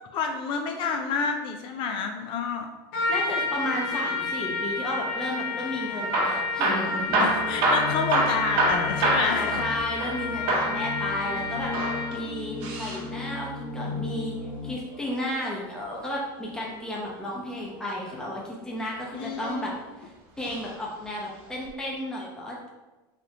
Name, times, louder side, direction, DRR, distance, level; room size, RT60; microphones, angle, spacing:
voice 1, 0.1-2.7 6.3-6.4 7.2-9.5 19.1-19.8, left 5 dB, 45° left, 4 dB, 0.4 m, -29 dB
Trumpet, 2.9-12.3, left 4 dB, 65° left, 0.7 m, -30 dB
voice 2, 3.1-7.3 9.2-11.7 12.1-14.3 14.6-19.7 20.0-20.1 20.4-22.7, left 1 dB, 5° left, -4 dB, 0.6 m, -33 dB
Hammer / Drill, 6.0-10.2 10.5-10.8 11.6-13.0 14.8-16.0 17.7-18.2 18.9-19.7 20.4-20.7 21.0-21.1 21.7-21.8, right 2 dB, 55° right, 0.8 m, -27 dB
sound 1, 7.0-14.7, left 2 dB, 90° left, 1.0 m, -36 dB
3.3 x 2.6 x 2.8 m, 1.1 s
supercardioid pair, 125°, 12 cm